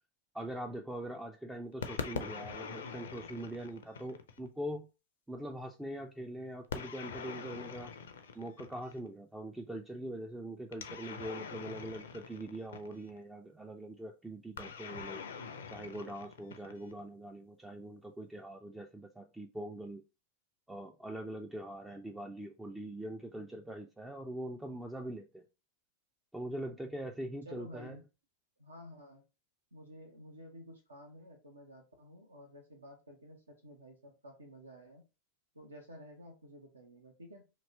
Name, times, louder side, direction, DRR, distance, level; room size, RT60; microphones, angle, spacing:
voice 1, 0.3-4.9 5.3-7.9 8.4-15.2 15.7-20.0 20.7-25.4 26.3-28.0, right 1 dB, 5° right, 3 dB, 0.3 m, -42 dB
sound 1, 1.8-4.5 6.7-9.1 10.7-13.2 14.6-17.0, left 6 dB, 65° left, 0.4 m, -43 dB
voice 2, 27.4-28.0 28.6-29.2 29.7-35.0 35.5-37.4, equal, 75° right, 3 dB, 0.7 m, -52 dB
3.0 x 2.8 x 2.8 m, 0.29 s
figure-of-eight pair, 90°, 0 cm